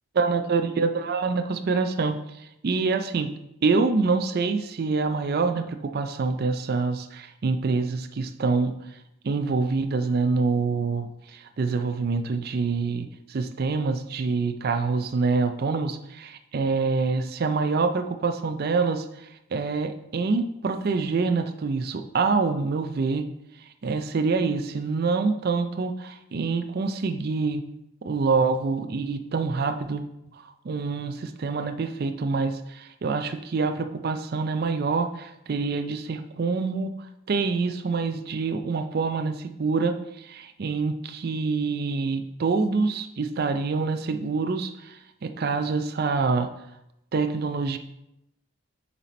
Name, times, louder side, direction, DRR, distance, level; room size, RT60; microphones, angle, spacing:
voice 1, 0.2-3.3 3.6-8.7 9.2-23.3 23.8-27.6 28.0-30.0 30.3-36.9 37.3-46.5 47.1-47.8, right 4 dB, 45° right, 7 dB, 0.4 m, -26 dB
7.2 x 4.1 x 4.1 m, 0.85 s
head